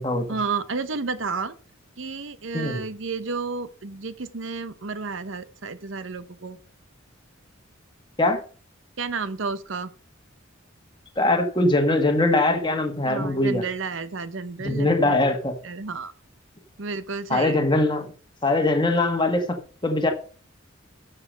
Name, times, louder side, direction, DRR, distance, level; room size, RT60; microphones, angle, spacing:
voice 1, 0.3-1.5 2.0-6.6 9.0-9.9 13.0-15.4 15.6-16.1 16.8-17.6, right 4 dB, 65° right, 14 dB, 0.8 m, -31 dB
voice 2, 11.2-13.6 14.6-15.6 17.3-18.1 18.4-20.1, left 2 dB, 20° left, 4 dB, 1.6 m, -22 dB
9.7 x 6.8 x 5.6 m, 0.41 s
head